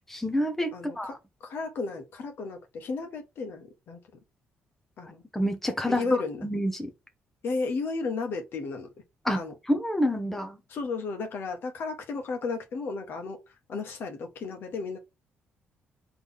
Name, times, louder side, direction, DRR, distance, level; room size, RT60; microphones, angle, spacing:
voice 1, 0.1-1.1 5.3-6.9 9.2-9.4 9.7-10.6, equal, 5° left, 1.0 m, -28 dB
voice 2, 0.7-4.0 5.0-5.2 5.9-6.4 7.4-8.9 9.3-9.5 10.7-15.0, left 4 dB, 60° left, 1.3 m, -34 dB
4.1 x 3.3 x 3.5 m
cardioid pair, 100°, 4 cm